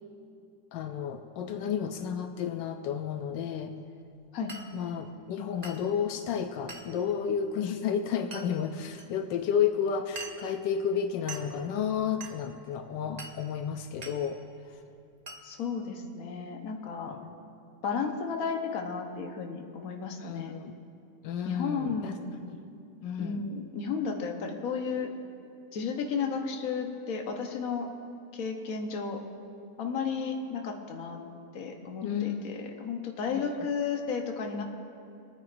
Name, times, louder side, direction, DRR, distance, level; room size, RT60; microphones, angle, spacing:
voice 1, 0.7-3.7 4.7-14.4 17.1-17.2 20.2-20.7 21.2-22.1 22.4-22.6 23.0-23.5 32.0-32.6 33.3-33.5, left 7 dB, 85° left, 6 dB, 1.2 m, -31 dB
Glass, 4.5-4.7 5.6-5.9 6.7-6.9 8.3-8.5 9.0-9.1 10.2-10.5 11.3-11.5 12.2-12.4 13.2-13.4 14.0-14.2 15.3-15.4, right 3 dB, 40° right, 0.6 m, -42 dB
voice 2, 15.4-17.2 17.8-20.5 21.4-22.3 23.2-25.1 25.7-27.9 28.3-29.2 29.8-31.2 31.5-34.6, left 5 dB, 55° left, 3 dB, 1.4 m, -33 dB
27.5 x 9.4 x 2.6 m, 2.5 s
omnidirectional pair, 1.9 m